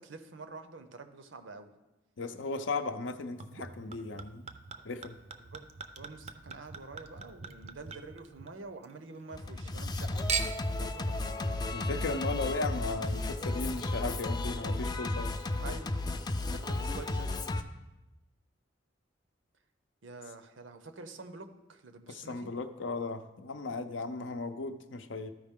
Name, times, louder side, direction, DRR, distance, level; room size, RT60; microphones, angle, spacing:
voice 1, 0.0-1.7 5.4-5.7 6.0-10.3 10.8-11.4 15.6-17.3 20.0-22.5, right 3 dB, 80° right, 9 dB, 0.7 m, -47 dB
voice 2, 2.2-4.4 4.8-5.2 11.7-15.4 22.1-25.3, left 3 dB, 75° left, 9 dB, 0.6 m, -36 dB
Chink clink / Liquid, 3.4-8.9 9.3-9.9 10.3-10.8 11.5-11.6, right 6 dB, 35° right, 0.5 m, -40 dB
Singing, 9.3-17.6, left 2 dB, 20° left, 0.4 m, -33 dB
13.0 x 4.9 x 3.6 m, 1.0 s
head